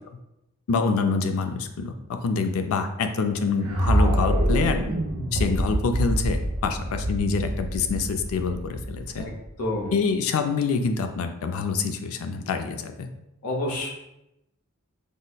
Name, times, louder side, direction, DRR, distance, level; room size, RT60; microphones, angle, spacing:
voice 1, 0.7-4.8 5.3-9.3 9.9-13.1, left 4 dB, 70° left, 6 dB, 0.4 m, -26 dB
sound 1, 3.6-9.7, right 1 dB, 65° right, 0.6 m, -26 dB
voice 2, 9.6-9.9 13.4-13.9, left 1 dB, 90° left, -2 dB, 0.7 m, -28 dB
5.3 x 2.0 x 2.2 m, 0.89 s
head